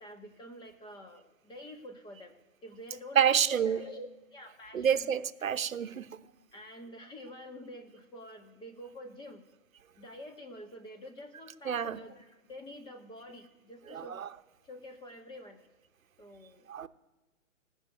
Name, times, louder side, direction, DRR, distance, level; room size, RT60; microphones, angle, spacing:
voice 1, 0.0-2.3 2.6-5.1 5.9-6.0 6.5-9.4 9.9-14.2 14.6-15.6 16.2-16.7, left 1 dB, 10° left, 1.7 m, -47 dB
voice 2, 3.1-3.8 4.7-6.1 11.6-12.0 13.9-14.3 16.7-16.9, right 8 dB, 80° right, 1.0 m, -28 dB
17.5 x 6.8 x 9.5 m
hypercardioid pair, 135°, 40 cm